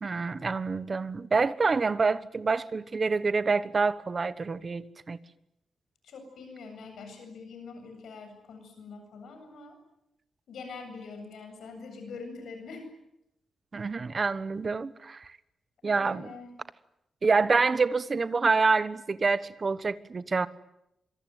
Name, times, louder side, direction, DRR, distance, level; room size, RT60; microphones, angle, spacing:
voice 1, 0.0-5.2 13.7-15.3 15.8-16.3 17.2-20.5, right 4 dB, 30° right, 14 dB, 1.2 m, -27 dB
voice 2, 6.0-9.8 10.5-12.9 15.8-16.6, left 4 dB, 80° left, 6 dB, 7.8 m, -44 dB
26.0 x 23.5 x 9.4 m, 0.84 s
wide cardioid pair, 165°, 0 cm